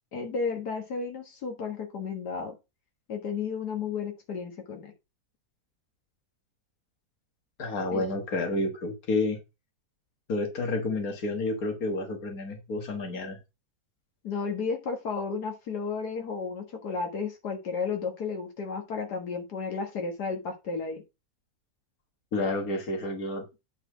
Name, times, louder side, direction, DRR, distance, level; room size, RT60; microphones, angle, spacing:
voice 1, 0.1-2.6 3.1-4.9 7.9-8.1 14.2-21.0, left 5 dB, 90° left, 2.1 m, -33 dB
voice 2, 7.6-9.4 10.3-13.4 22.3-23.4, left 2 dB, 65° left, 2.1 m, -30 dB
8.9 x 4.3 x 5.0 m
omnidirectional pair, 1.7 m